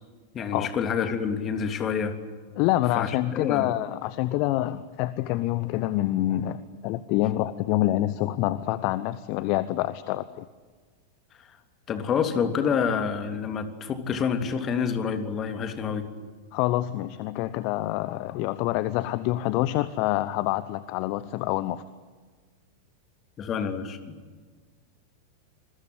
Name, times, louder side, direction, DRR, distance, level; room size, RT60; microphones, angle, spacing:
voice 1, 0.3-2.1 2.9-3.7 11.9-16.1 23.4-24.0, left 6 dB, 30° left, 7 dB, 3.2 m, -27 dB
voice 2, 2.6-10.4 16.5-21.8, left 15 dB, 45° left, 16 dB, 1.0 m, -26 dB
26.5 x 22.5 x 9.8 m, 1.5 s
figure-of-eight pair, 90°, 0 cm